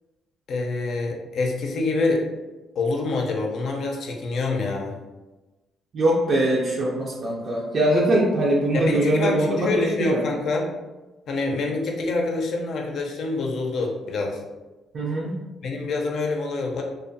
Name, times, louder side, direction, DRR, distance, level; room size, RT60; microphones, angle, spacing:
voice 1, 0.5-2.2 2.8-4.9 8.7-10.7 11.3-14.4 15.6-16.8, left 3 dB, 65° left, 1 dB, 0.5 m, -26 dB
voice 2, 5.9-10.2 14.9-15.4, right 1 dB, 50° right, -3 dB, 0.4 m, -22 dB
2.6 x 2.3 x 2.6 m, 1.1 s
cardioid pair, 90°, 0 cm